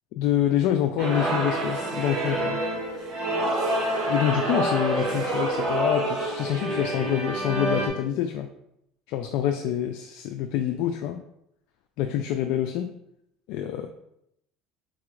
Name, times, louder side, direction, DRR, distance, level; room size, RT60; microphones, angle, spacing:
voice 1, 0.2-2.6 4.1-8.5 9.1-11.2 12.0-12.9 13.5-13.9, left 10 dB, 70° left, 5 dB, 0.3 m, -26 dB
sound 1, 1.0-7.9, right 1 dB, 60° right, 1.4 m, -27 dB
4.1 x 2.4 x 4.6 m, 0.78 s
supercardioid pair, 100°, 0 cm